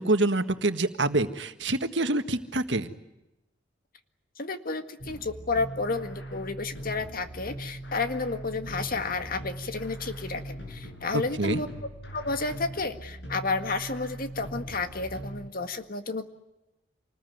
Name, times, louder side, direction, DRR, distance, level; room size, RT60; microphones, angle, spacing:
voice 1, 0.0-2.9 11.1-11.6, right 2 dB, 75° right, 9 dB, 1.7 m, -26 dB
voice 2, 4.4-11.7 12.1-16.3, left 3 dB, 50° left, 8 dB, 1.9 m, -31 dB
sound 1, 5.0-15.5, right 1 dB, 70° left, 7.5 m, -40 dB
27.5 x 20.0 x 9.4 m, 0.95 s
head